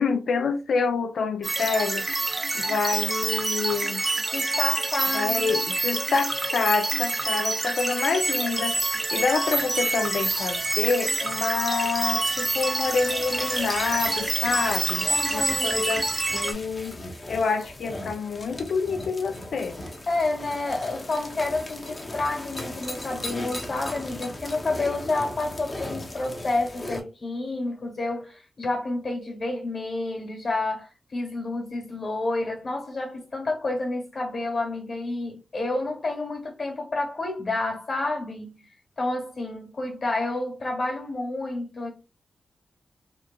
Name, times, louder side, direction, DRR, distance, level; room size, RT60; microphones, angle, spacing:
voice 1, 0.0-2.0 2.5-4.0 5.1-8.8 9.1-16.1 16.3-17.0 17.3-19.8, left 5 dB, 80° left, 0.4 m, -27 dB
sound 1, 1.4-16.5, right 2 dB, 35° right, 0.6 m, -27 dB
voice 2, 4.3-5.6 15.1-15.8 20.1-38.6 39.0-41.9, left 2 dB, 55° left, 1.2 m, -29 dB
sound 2, 8.2-27.0, left 1 dB, 35° left, 0.6 m, -39 dB
2.8 x 2.3 x 2.2 m
cardioid pair, 75°, 0 cm